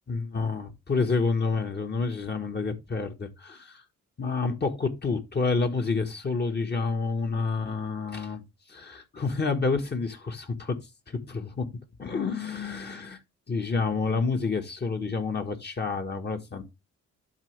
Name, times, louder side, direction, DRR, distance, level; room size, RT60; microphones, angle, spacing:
voice 1, 0.1-3.8 4.2-10.8 11.1-11.7 12.0-13.2 13.5-16.6, left 4 dB, 35° left, 1.4 m, -29 dB
12.0 x 4.2 x 3.3 m
cardioid pair, 90°, 30 cm